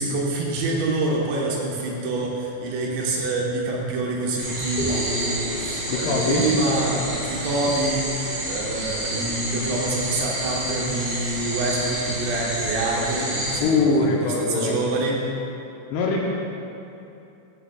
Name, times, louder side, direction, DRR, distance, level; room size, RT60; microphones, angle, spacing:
voice 1, 0.0-15.2, right 2 dB, 85° right, -3 dB, 3.4 m, -26 dB
sound 1, 4.4-13.6, right 1 dB, 50° right, 2.1 m, -29 dB
sound 2, 4.8-9.2, equal, 55° left, 1.6 m, -36 dB
voice 2, 5.9-6.5 13.6-14.8 15.9-16.3, left 3 dB, 80° left, -2 dB, 2.6 m, -22 dB
13.5 x 7.8 x 2.3 m, 2.8 s
omnidirectional pair, 5.0 m